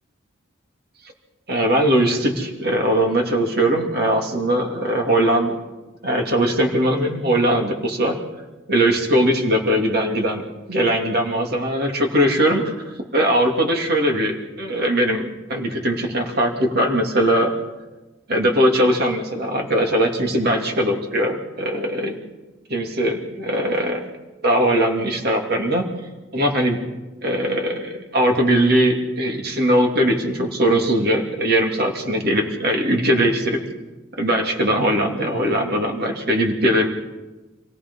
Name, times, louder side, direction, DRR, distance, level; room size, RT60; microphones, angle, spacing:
voice 1, 1.5-5.5 6.0-8.1 8.7-10.4 10.7-12.8 13.1-17.5 18.3-22.2 22.7-24.0 24.4-25.8 26.3-26.8 27.2-33.6 34.2-36.9, right 1 dB, 55° right, 2 dB, 2.9 m, -20 dB
26.5 x 17.5 x 5.6 m, 1.2 s
head